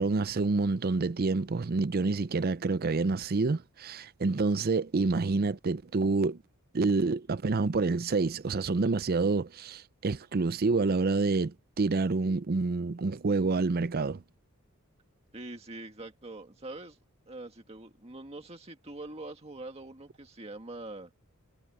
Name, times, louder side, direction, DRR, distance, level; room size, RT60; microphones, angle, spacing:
voice 1, 0.0-6.4 6.7-14.2, right 3 dB, 45° right, 0.5 m, -28 dB
voice 2, 15.3-17.0 17.3-21.1, right 2 dB, 30° right, 1.8 m, -44 dB
head